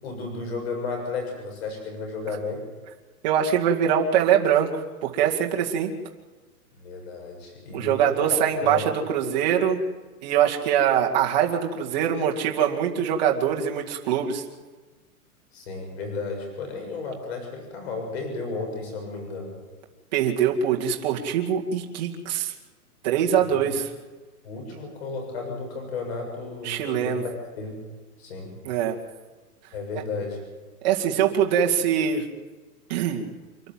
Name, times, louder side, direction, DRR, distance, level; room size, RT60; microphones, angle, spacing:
voice 1, 0.0-2.6 6.7-8.8 15.5-19.5 23.4-23.7 24.4-27.3 27.6-27.8 28.2-28.5 29.7-30.4, left 3 dB, 40° left, 2 dB, 7.1 m, -33 dB
voice 2, 3.2-5.9 7.7-9.8 10.2-14.4 20.1-22.5 23.0-23.9 26.6-27.2 28.6-29.0 30.8-32.2 32.9-33.3, right 9 dB, 30° right, 0 dB, 2.2 m, -23 dB
28.5 x 11.5 x 8.9 m, 1.3 s
hypercardioid pair, 175°, 46 cm